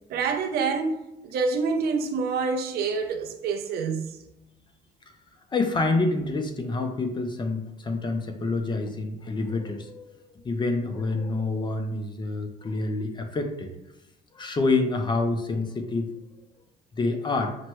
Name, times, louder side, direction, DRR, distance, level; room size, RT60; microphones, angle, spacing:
voice 1, 0.1-0.9 1.2-4.2, right 5 dB, 65° right, 0.6 m, -27 dB
voice 2, 5.5-10.2 10.4-13.7 14.3-16.1 16.9-17.6, left 3 dB, 25° left, 0.5 m, -27 dB
5.9 x 2.1 x 3.0 m
cardioid pair, 110°, 17 cm